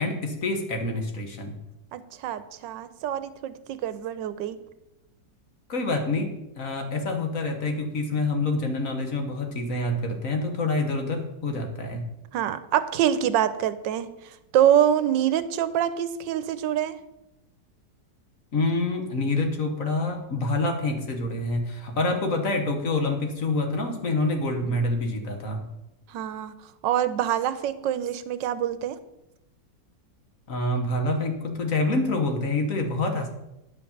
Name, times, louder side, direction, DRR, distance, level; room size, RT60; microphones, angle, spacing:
voice 1, 0.0-1.6 5.7-12.0 18.5-25.6 30.5-33.3, left 2 dB, 50° left, 4 dB, 1.5 m, -27 dB
voice 2, 1.9-4.6 12.3-14.1 14.5-17.0 26.1-26.5 26.8-29.0, right 10 dB, 85° right, 12 dB, 1.3 m, -25 dB
9.7 x 5.2 x 7.1 m, 0.91 s
omnidirectional pair, 1.9 m